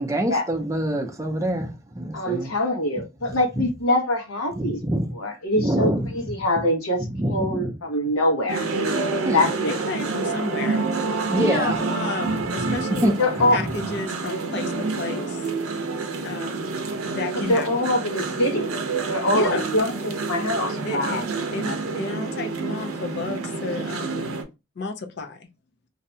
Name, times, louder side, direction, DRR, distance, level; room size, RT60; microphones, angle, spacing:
voice 1, 0.0-2.5 4.6-5.1 5.5-6.2 7.1-7.8 9.2-9.4 11.3-11.8 12.7-13.2, right 1 dB, 15° right, 0.4 m, -25 dB
voice 2, 2.1-4.8 5.1-8.7 9.3-9.7 13.2-13.6 17.5-18.7 19.1-21.2 21.6-21.8, left 1 dB, 85° left, 1.0 m, -24 dB
sound 1, 8.5-24.4, right 3 dB, 85° right, 0.6 m, -28 dB
voice 3, 9.6-13.1 13.5-15.5 16.2-17.7 19.3-19.7 20.8-21.2 21.5-24.4 24.8-25.5, left 3 dB, 50° left, 0.4 m, -32 dB
2.6 x 2.2 x 2.6 m
head